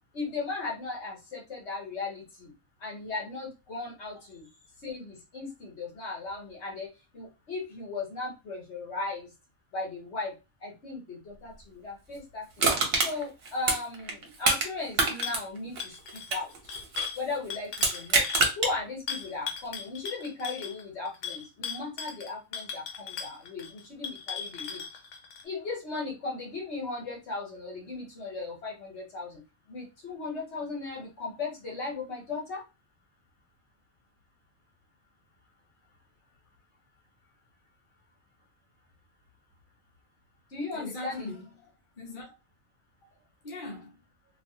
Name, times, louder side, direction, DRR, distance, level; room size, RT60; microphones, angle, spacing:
voice 1, 0.1-2.5 2.8-4.5 4.8-6.9 7.1-9.3 9.7-10.3 10.6-12.7 13.0-16.5 17.1-18.3 18.6-24.8 25.4-29.4 29.7-32.6 40.5-41.3, left 3 dB, 65° left, 1.2 m, -37 dB
Crushing, 12.6-14.7 14.9-17.2 17.7-18.7 19.2-19.3, right 3 dB, 60° right, 1.0 m, -26 dB
sound 1, 15.2-15.4 15.8-18.5 19.1-25.4, left 6 dB, 90° left, 1.0 m, -38 dB
voice 2, 40.7-42.3 43.4-43.9, left 2 dB, 45° left, 1.1 m, -41 dB
3.1 x 2.6 x 2.7 m
omnidirectional pair, 1.2 m